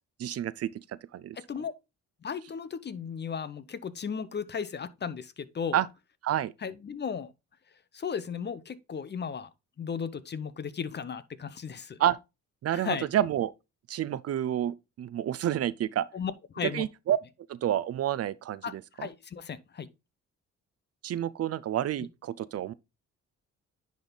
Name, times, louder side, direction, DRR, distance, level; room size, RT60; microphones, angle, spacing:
voice 1, 0.2-1.4 5.7-5.9 6.2-6.5 12.0-12.2 12.6-13.5 13.9-16.1 16.6-17.2 17.5-19.1 21.0-22.7, right 11 dB, 55° right, 0.5 m, -29 dB
voice 2, 1.4-1.7 2.2-5.8 6.6-7.3 7.9-9.5 9.8-12.0 12.7-13.1 16.1-16.8 18.6-18.7 19.0-19.9, left 6 dB, 35° left, 0.7 m, -35 dB
10.0 x 3.5 x 3.9 m
cardioid pair, 90°, 30 cm